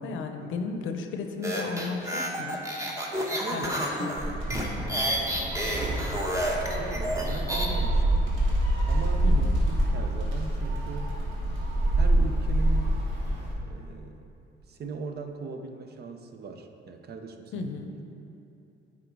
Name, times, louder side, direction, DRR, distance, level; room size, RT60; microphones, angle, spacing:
voice 1, 0.0-2.6 3.5-3.6 4.0-4.3 4.8-4.9 9.2-9.5 17.5-17.9, left 4 dB, 80° left, 5 dB, 0.6 m, -34 dB
sound 1, 1.4-7.7, equal, 15° right, 1.0 m, -30 dB
voice 2, 3.2-3.7 4.8-5.3 6.5-8.3 8.9-11.1 12.0-13.0 13.6-14.3 14.7-17.7, right 4 dB, 55° right, 6 dB, 0.6 m, -39 dB
Gull seagull, 4.2-13.5, right 1 dB, 70° right, 1.5 m, -26 dB
9.2 x 3.7 x 4.6 m, 2.8 s
cardioid pair, 90°, 20 cm